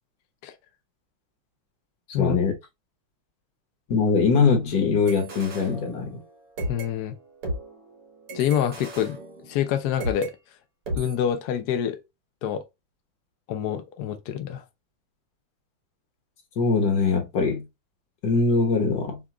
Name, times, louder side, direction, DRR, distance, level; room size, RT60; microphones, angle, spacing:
voice 1, 2.2-2.5 3.9-6.2 16.6-17.6 18.2-19.2, left 4 dB, 50° left, 1.6 m, -22 dB
sound 1, 5.1-6.3 6.6-10.3 10.9-11.2, right 1 dB, 80° right, 2.3 m, -35 dB
voice 2, 6.7-7.2 8.3-9.2 9.5-10.3 10.9-12.0 12.4-12.6 13.5-14.6, left 9 dB, 80° left, 0.8 m, -26 dB
5.9 x 2.4 x 3.0 m
omnidirectional pair, 2.4 m